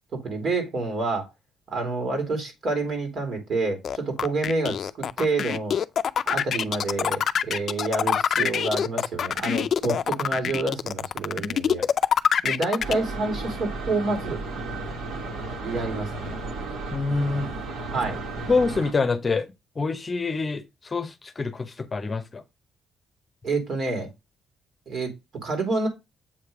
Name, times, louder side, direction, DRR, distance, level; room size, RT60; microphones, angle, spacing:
voice 1, 0.1-1.3 1.7-5.8 6.3-11.8 12.4-14.4 15.6-16.4 17.9-18.2 23.4-24.1 24.9-25.1 25.4-25.9, right 3 dB, 60° right, 2.9 m, -28 dB
sound 1, 3.8-12.9, left 8 dB, 55° left, 0.4 m, -24 dB
sound 2, 12.8-18.9, right 3 dB, 80° right, 1.8 m, -33 dB
voice 2, 16.9-17.5 18.5-19.5 19.8-22.4, left 4 dB, 30° left, 0.8 m, -26 dB
7.6 x 3.2 x 4.9 m
cardioid pair, 90°, 0 cm